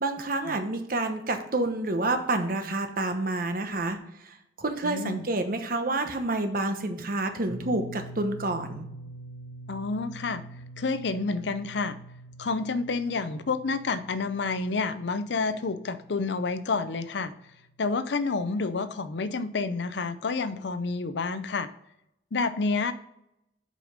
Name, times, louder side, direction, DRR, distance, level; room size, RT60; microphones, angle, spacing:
voice 1, 0.0-8.9, right 2 dB, 50° right, 7 dB, 1.0 m, -29 dB
voice 2, 4.8-5.3 9.7-10.4 10.8-12.0 12.4-17.3 17.8-21.7 22.3-22.9, left 4 dB, 75° left, 12 dB, 0.6 m, -29 dB
sound 1, 7.5-18.0, right 2 dB, 90° left, 2.5 m, -46 dB
7.5 x 5.1 x 5.1 m, 0.80 s
head